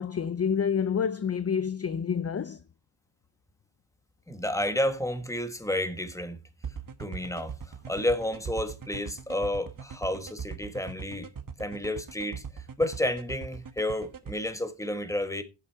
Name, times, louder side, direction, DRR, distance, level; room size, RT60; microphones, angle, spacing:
voice 1, 0.0-2.6, left 7 dB, 35° left, 0.5 m, -28 dB
voice 2, 4.3-6.4 7.0-11.3 11.6-15.4, left 1 dB, 5° left, 1.3 m, -31 dB
sound 1, 6.6-14.3, right 6 dB, 50° right, 1.1 m, -39 dB
7.6 x 7.6 x 4.6 m
wide cardioid pair, 95°, 44 cm